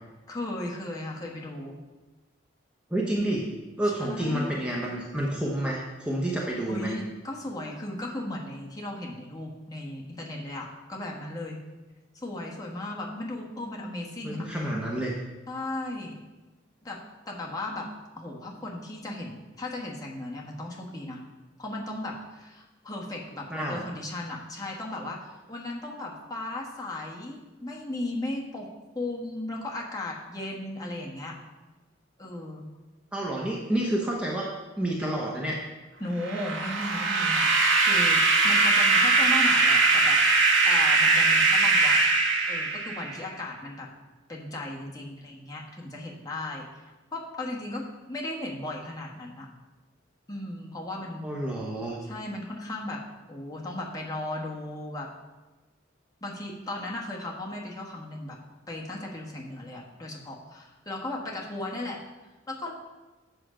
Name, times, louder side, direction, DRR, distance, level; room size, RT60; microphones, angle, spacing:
voice 1, 0.3-1.7 3.8-4.6 6.7-11.6 12.2-14.5 15.5-16.2 16.8-17.0 17.3-17.9 18.2-21.2 21.6-28.7 28.9-31.4 32.2-32.7 36.0-37.5 37.8-40.2 40.6-42.0 42.5-43.9 44.3-46.6 47.1-49.5 50.3-51.2 52.0-53.0 53.3-55.1 56.2-58.4 58.7-62.0 62.5-62.7, left 1 dB, 20° left, -2 dB, 1.3 m, -36 dB
voice 2, 2.9-3.5 3.8-6.9 14.2-15.1 23.5-23.8 33.1-34.5 34.8-35.6 51.2-52.0, right 1 dB, 5° right, -3 dB, 0.9 m, -29 dB
sound 1, 36.2-43.2, right 3 dB, 90° right, 1.2 m, -21 dB
7.9 x 6.3 x 5.0 m, 1.1 s
head